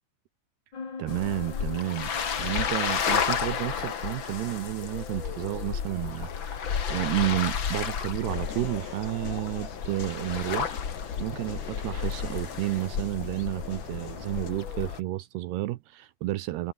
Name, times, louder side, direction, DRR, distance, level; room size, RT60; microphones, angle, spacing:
sound 1, 0.7-12.2, left 4 dB, 30° left, 2.9 m, -47 dB
voice 1, 1.0-6.6 6.9-10.8 11.2-16.7, right 17 dB, 75° right, 2.6 m, -31 dB
sound 2, 1.1-15.0, left 7 dB, 80° left, 1.0 m, -32 dB
sound 3, 8.2-14.5, left 7 dB, 65° left, 5.8 m, -43 dB
omnidirectional pair, 5.5 m